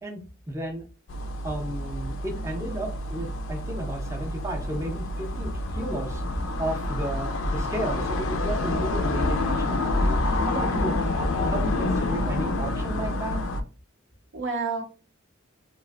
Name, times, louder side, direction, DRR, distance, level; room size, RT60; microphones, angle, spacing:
voice 1, 0.0-0.8 1.4-13.4, right 1 dB, 15° right, 1 dB, 0.5 m, -33 dB
sound 1, 1.1-13.6, left 2 dB, 65° left, 0.4 m, -28 dB
voice 2, 10.3-11.0 14.3-14.8, right 4 dB, 60° right, 4 dB, 0.5 m, -31 dB
3.0 x 2.5 x 2.3 m, 0.36 s
head